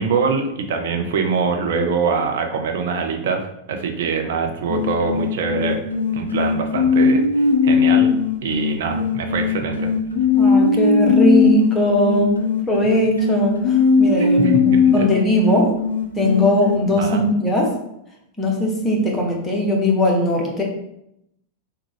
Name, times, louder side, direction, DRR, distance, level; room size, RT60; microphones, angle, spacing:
voice 1, 0.0-5.8 6.1-7.2 7.6-8.1 8.4-9.8 14.2-14.8 17.0-17.2, right 5 dB, 55° right, 4 dB, 0.5 m, -23 dB
sound 1, 4.7-16.8, left 5 dB, 80° left, 0.4 m, -19 dB
voice 2, 10.4-15.7 16.2-17.7 18.4-20.6, left 1 dB, 15° left, -1 dB, 0.8 m, -19 dB
3.5 x 2.3 x 3.3 m, 0.79 s
figure-of-eight pair, 90°, 0 cm